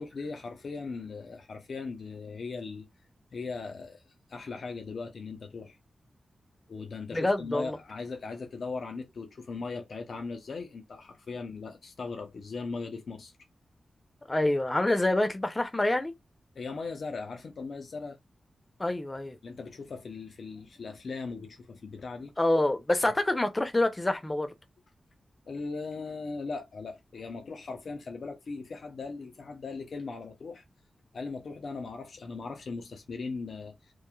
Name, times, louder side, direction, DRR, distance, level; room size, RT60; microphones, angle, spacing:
voice 1, 0.0-2.9 3.3-4.0 4.3-5.8 6.7-13.3 16.5-18.2 19.4-22.3 23.0-23.1 25.5-30.6 31.1-33.9, left 4 dB, 70° left, 0.5 m, -39 dB
voice 2, 7.1-7.8 14.3-16.1 18.8-19.4 22.4-24.5, left 1 dB, 25° left, 0.5 m, -26 dB
3.0 x 2.0 x 2.2 m
wide cardioid pair, 75°, 0 cm